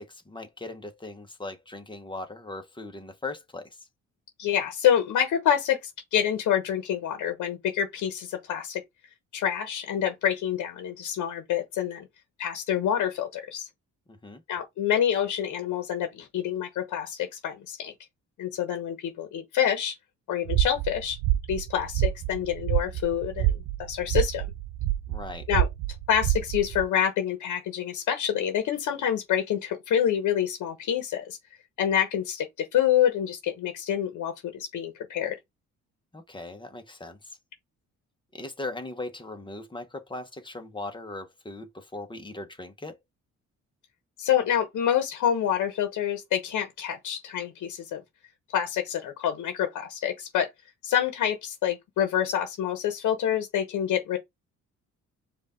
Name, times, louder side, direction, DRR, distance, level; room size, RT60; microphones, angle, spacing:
voice 1, 0.0-3.8 14.1-14.4 25.1-25.5 36.1-37.4 38.3-43.0, left 2 dB, 15° left, 1.1 m, -39 dB
voice 2, 4.4-8.8 9.3-12.1 12.4-13.7 14.5-17.9 18.4-20.0 20.3-21.2 21.5-24.5 25.5-25.7 26.1-31.4 31.8-35.4 44.2-48.0 48.5-50.5 50.8-54.2, left 9 dB, 75° left, 1.1 m, -27 dB
sound 1, 20.5-26.9, right 14 dB, 85° right, 0.5 m, -28 dB
4.9 x 2.7 x 3.7 m
cardioid pair, 90°, 30 cm